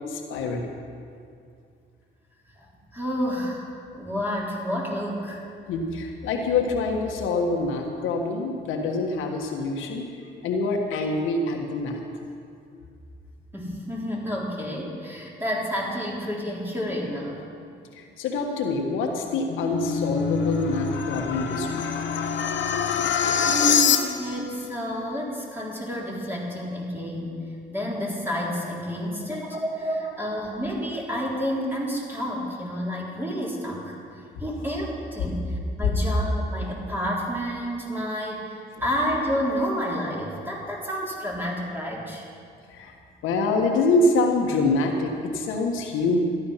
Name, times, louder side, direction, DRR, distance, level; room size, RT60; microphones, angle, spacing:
voice 1, 0.1-0.7 5.7-10.1 10.4-12.0 17.9-21.8 29.4-29.6 30.3-30.5 42.7-42.9 43.2-46.2, left 3 dB, 90° left, 1 dB, 1.5 m, -25 dB
voice 2, 2.9-3.7 4.0-5.4 13.5-17.4 23.4-27.4 27.7-33.9 34.4-35.4 35.8-42.2, equal, 10° right, -4 dB, 3.8 m, -29 dB
sound 1, 19.3-24.5, left 7 dB, 70° left, 1.2 m, -25 dB
13.5 x 11.5 x 5.7 m, 2.4 s
cardioid pair, 90°, 20 cm